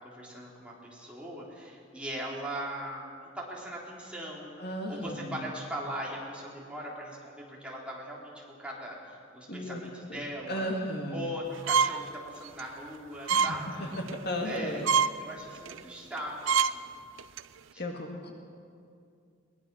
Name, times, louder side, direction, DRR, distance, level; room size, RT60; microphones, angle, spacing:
voice 1, 0.0-10.7 11.1-13.9 14.4-14.8 15.2-16.9 17.7-17.8, right 1 dB, 5° right, -4 dB, 3.5 m, -40 dB
voice 2, 4.6-5.5 9.5-9.8 10.1-11.3 13.3-14.9 17.8-18.3, equal, 50° left, 1 dB, 2.1 m, -35 dB
sound 1, 11.7-12.0 12.5-12.6 13.3-13.5 13.9-14.2 14.6-14.7 14.8-15.1 15.6-15.8 16.2-16.3 16.4-16.7 17.2-17.4, right 6 dB, 75° right, 0.5 m, -25 dB
22.5 x 19.5 x 6.2 m, 2.4 s
head